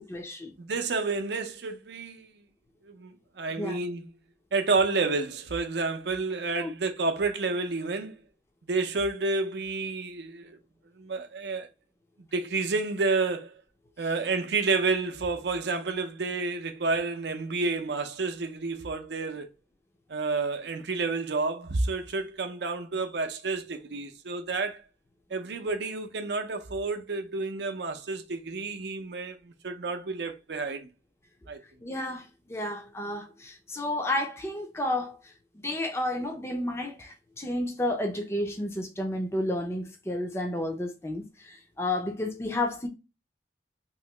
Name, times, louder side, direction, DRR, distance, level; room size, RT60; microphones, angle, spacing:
voice 1, 0.1-0.5 3.6-3.8 6.5-6.7 31.8-42.9, left 1 dB, 15° left, 0.5 m, -31 dB
voice 2, 0.6-2.3 2.9-4.0 4.5-8.2 8.7-10.6 11.0-11.7 12.3-13.6 14.0-19.5 20.1-24.9 25.3-30.9 31.5-31.6, right 3 dB, 70° right, 0.5 m, -30 dB
3.0 x 2.7 x 3.1 m
head